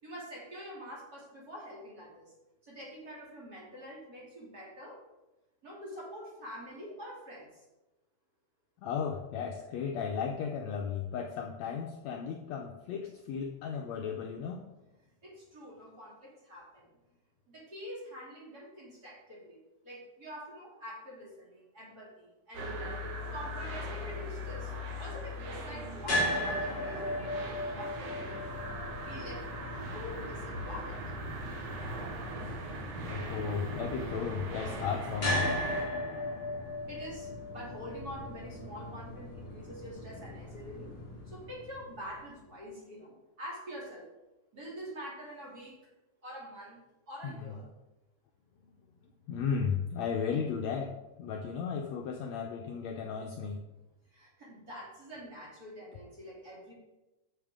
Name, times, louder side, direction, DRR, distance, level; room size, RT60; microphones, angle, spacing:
voice 1, 0.0-2.3 2.6-5.0 5.6-7.6 15.2-16.9 17.5-19.6 19.8-22.7 23.3-24.7 25.0-28.4 29.0-29.4 29.8-31.0 36.9-40.9 41.3-44.0 44.5-45.8 46.2-46.8 47.1-47.6 54.1-56.7, equal, 30° right, -6 dB, 2.7 m, -46 dB
voice 2, 8.8-14.7 33.0-35.5 47.2-47.6 49.3-50.9 51.2-53.6, left 6 dB, 80° left, 2 dB, 1.6 m, -35 dB
sound 1, 22.5-35.8, equal, 60° right, 2.1 m, -40 dB
sound 2, 26.0-42.2, left 1 dB, 30° left, 3.3 m, -37 dB
10.5 x 6.7 x 3.6 m, 1.0 s
omnidirectional pair, 3.8 m